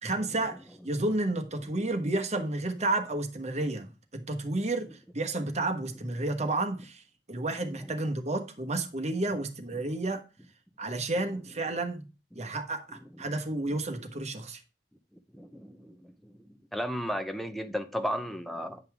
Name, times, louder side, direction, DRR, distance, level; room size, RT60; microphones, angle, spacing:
voice 1, 0.0-0.6 0.8-7.0 7.3-10.2 10.8-12.0 12.3-14.6, right 2 dB, 40° right, 1.2 m, -31 dB
voice 2, 15.3-16.3 16.7-18.8, equal, ahead, 0.7 m, -34 dB
9.2 x 5.5 x 3.5 m
head